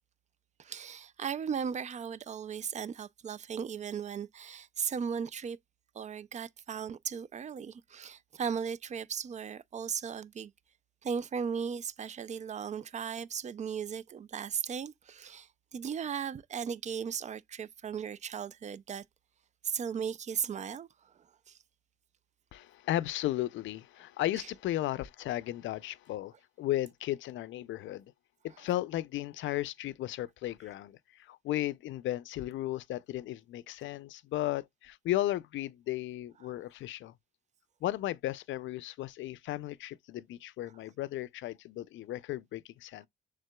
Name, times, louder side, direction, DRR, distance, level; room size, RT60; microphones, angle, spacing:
voice 1, 0.6-5.6 5.9-10.5 11.0-19.0 19.6-21.6 24.4-24.5 36.4-36.5, right 7 dB, 35° right, 0.4 m, -37 dB
voice 2, 22.5-28.1 28.4-37.1 37.8-43.1, left 14 dB, 75° left, 0.5 m, -35 dB
6.5 x 3.5 x 2.2 m
cardioid pair, 90°, 20 cm